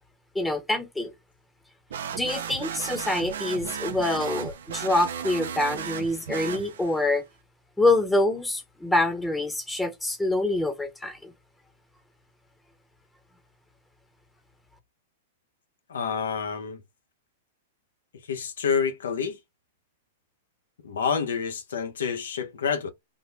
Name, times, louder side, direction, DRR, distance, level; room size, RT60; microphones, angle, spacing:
voice 1, 0.3-1.1 2.1-7.2 7.8-11.3, left 2 dB, 5° left, 0.9 m, -26 dB
sound 1, 1.9-7.1, right 8 dB, 80° right, 0.6 m, -35 dB
voice 2, 15.9-16.8 18.3-19.4 20.8-22.9, left 6 dB, 85° left, 0.8 m, -28 dB
3.8 x 2.1 x 3.3 m
hypercardioid pair, 130°, 0 cm